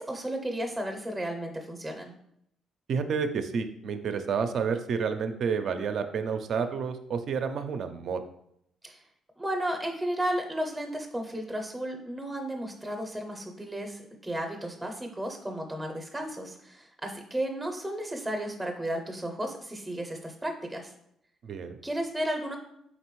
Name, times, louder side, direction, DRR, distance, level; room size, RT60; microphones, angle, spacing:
voice 1, 0.0-2.2 8.8-9.0 9.4-20.9 21.8-22.6, right 1 dB, 10° right, 3 dB, 0.5 m, -33 dB
voice 2, 2.9-8.2 21.4-21.8, right 6 dB, 65° right, 8 dB, 0.4 m, -30 dB
4.0 x 3.3 x 3.0 m, 0.76 s
cardioid pair, 90°, 0 cm